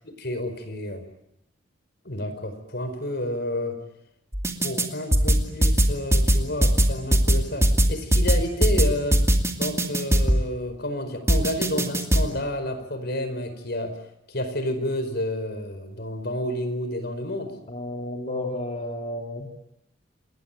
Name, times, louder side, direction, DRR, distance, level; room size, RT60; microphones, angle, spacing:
voice 1, 0.2-1.0 2.0-3.8 4.6-9.2 9.5-14.0 14.3-17.5, left 1 dB, 55° left, 10 dB, 4.9 m, -30 dB
sound 1, 4.3-4.9 5.1-10.4 11.3-12.2, right 1 dB, 15° right, 2.5 m, -19 dB
voice 2, 17.7-19.5, left 1 dB, 35° left, 1 dB, 3.2 m, -32 dB
28.5 x 21.0 x 9.0 m, 0.83 s
head